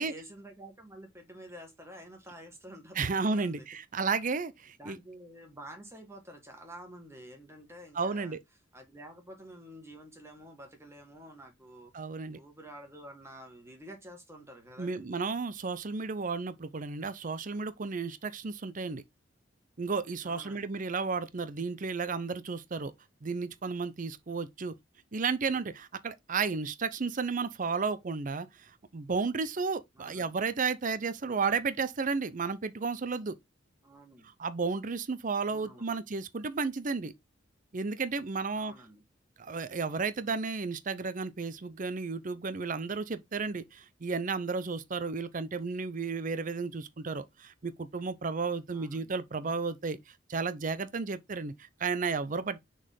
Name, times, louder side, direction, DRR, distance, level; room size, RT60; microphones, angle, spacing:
voice 1, 0.0-3.7 4.8-8.3 8.7-11.9 12.3-15.1 20.2-20.7 29.9-30.3 33.8-34.3 35.4-36.0 38.5-39.0 48.7-49.1, right 1 dB, 15° right, 1.8 m, -49 dB
voice 2, 2.9-5.0 7.9-8.4 11.9-12.4 14.8-19.0 19.8-22.9 23.2-24.7 25.1-33.4 34.4-37.1 37.7-38.7 39.4-50.0 50.3-52.6, right 4 dB, 45° right, 0.6 m, -33 dB
6.4 x 4.1 x 3.7 m
head